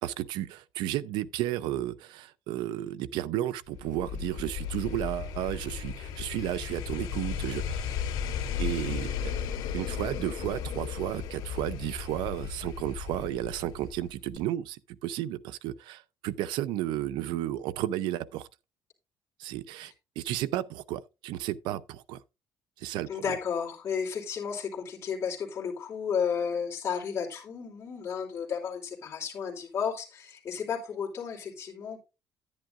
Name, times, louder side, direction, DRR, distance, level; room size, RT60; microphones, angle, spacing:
voice 1, 0.0-8.0 8.6-9.3 9.7-18.5 19.4-22.2 22.8-23.2, right 13 dB, 90° right, 0.6 m, -33 dB
sound 1, 3.7-14.1 14.4-14.5, left 7 dB, 80° left, 2.2 m, -35 dB
voice 2, 23.1-32.0, left 7 dB, 35° left, 3.0 m, -33 dB
10.5 x 10.5 x 2.5 m
cardioid pair, 160°, 8 cm